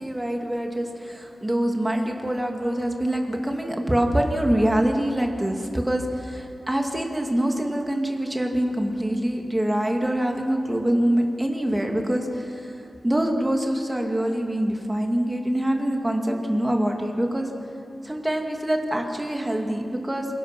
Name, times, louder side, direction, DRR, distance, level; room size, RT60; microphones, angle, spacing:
voice 1, 0.0-17.5 18.0-20.3, right 1 dB, 15° right, 2 dB, 2.2 m, -25 dB
26.5 x 17.0 x 6.0 m, 2.6 s
wide cardioid pair, 115°, 0 cm